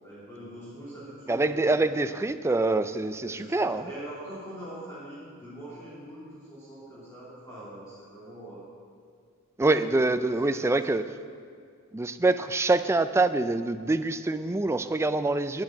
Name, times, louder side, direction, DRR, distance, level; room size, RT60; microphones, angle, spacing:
voice 1, 0.0-1.8 2.0-2.3 3.2-8.7 9.8-9.9 10.2-10.8, right 1 dB, 15° left, -11 dB, 3.0 m, -43 dB
voice 2, 1.3-3.9 9.6-11.0 11.9-15.6, right 2 dB, 10° right, 11 dB, 0.3 m, -25 dB
10.5 x 8.8 x 7.5 m, 2.2 s
head